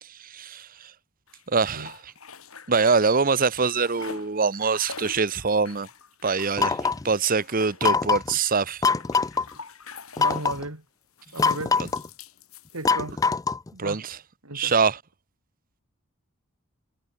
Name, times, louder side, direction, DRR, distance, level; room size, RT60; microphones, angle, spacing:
voice 1, 0.0-0.9 1.5-2.1 2.7-5.9 6.2-8.8 11.8-11.9 13.8-14.2 14.5-15.0, right 4 dB, 40° right, 1.0 m, -24 dB
sound 1, 1.3-3.2 3.5-10.7 11.2-13.2, left 5 dB, 80° left, 6.9 m, -45 dB
sound 2, 6.6-7.1 7.8-8.3 8.8-9.4 10.2-10.6 11.4-12.1 12.9-13.7, left 4 dB, 15° left, 0.3 m, -23 dB
voice 2, 10.2-10.8 11.3-11.9 12.7-13.2 13.7-14.0 14.4-14.7, right 2 dB, 85° right, 4.6 m, -35 dB
head